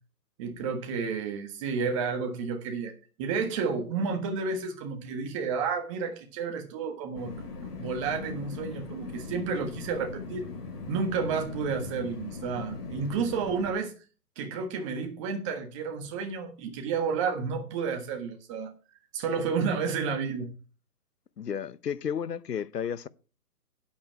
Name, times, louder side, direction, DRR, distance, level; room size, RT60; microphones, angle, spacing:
voice 1, 0.4-2.9 3.2-10.5 10.9-13.9 14.4-18.7 19.1-20.5, right 5 dB, 20° right, 1.4 m, -31 dB
sound 1, 7.1-13.7, left 4 dB, 75° left, 4.6 m, -39 dB
voice 2, 21.4-23.1, left 8 dB, 90° left, 0.9 m, -32 dB
9.9 x 8.6 x 4.5 m
hypercardioid pair, 155°, 47 cm